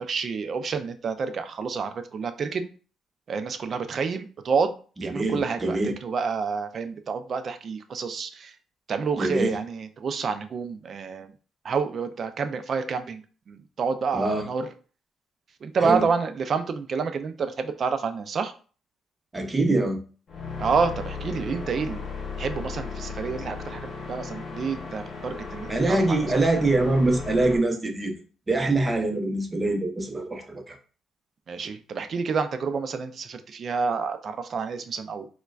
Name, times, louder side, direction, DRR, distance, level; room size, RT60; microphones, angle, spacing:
voice 1, 0.0-2.7 3.3-8.5 8.9-11.3 11.6-13.2 13.5-14.7 15.6-18.5 20.6-22.0 22.4-26.4 31.5-35.3, right 5 dB, 50° right, 9 dB, 0.4 m, -29 dB
voice 2, 5.0-5.9 9.2-9.5 14.1-14.5 15.8-16.1 19.3-20.0 25.7-28.2 28.5-30.8, right 2 dB, 20° right, 4 dB, 0.7 m, -24 dB
sound 1, 20.3-27.6, left 4 dB, 50° left, 0.9 m, -36 dB
4.3 x 2.2 x 2.3 m, 0.39 s
cardioid pair, 90°, 0 cm